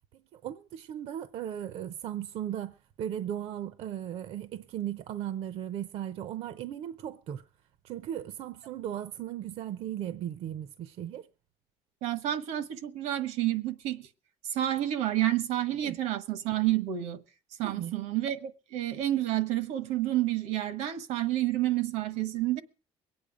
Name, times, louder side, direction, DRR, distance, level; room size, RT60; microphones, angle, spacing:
voice 1, 0.3-7.4 7.8-11.3 15.8-16.0 17.6-17.9, right 10 dB, 60° right, 0.7 m, -37 dB
voice 2, 12.0-14.1 14.5-17.2 17.6-22.6, right 13 dB, 85° right, 1.3 m, -29 dB
22.5 x 8.8 x 5.0 m
cardioid pair, 130°, 11 cm